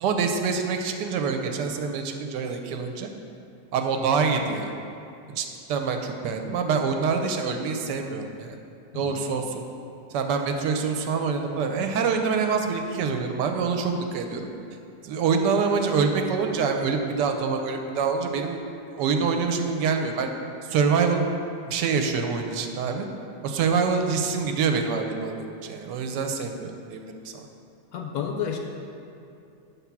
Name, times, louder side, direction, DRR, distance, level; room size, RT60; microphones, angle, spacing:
voice 1, 0.0-3.1 3.7-4.7 5.3-8.6 8.9-9.6 10.1-14.4 15.0-18.6 18.9-20.3 20.7-21.2 21.7-23.1 23.4-27.4, right 5 dB, 80° right, 5 dB, 1.2 m, -26 dB
voice 2, 27.9-28.6, left 8 dB, 70° left, 2 dB, 0.9 m, -30 dB
7.3 x 3.5 x 5.8 m, 2.6 s
omnidirectional pair, 1.9 m